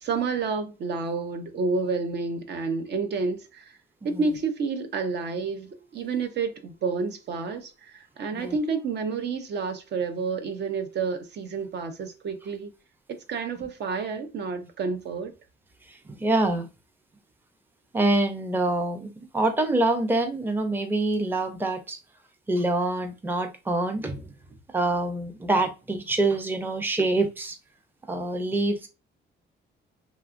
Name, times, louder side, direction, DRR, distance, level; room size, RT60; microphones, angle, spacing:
voice 1, 0.0-3.8 4.0-12.7 13.1-15.3, right 4 dB, 60° right, 0.6 m, -30 dB
voice 2, 15.9-16.7 17.9-22.0 22.5-24.3 24.7-27.6 28.1-28.9, right 2 dB, 10° right, 0.5 m, -26 dB
2.8 x 2.2 x 2.5 m
cardioid pair, 90°, 20 cm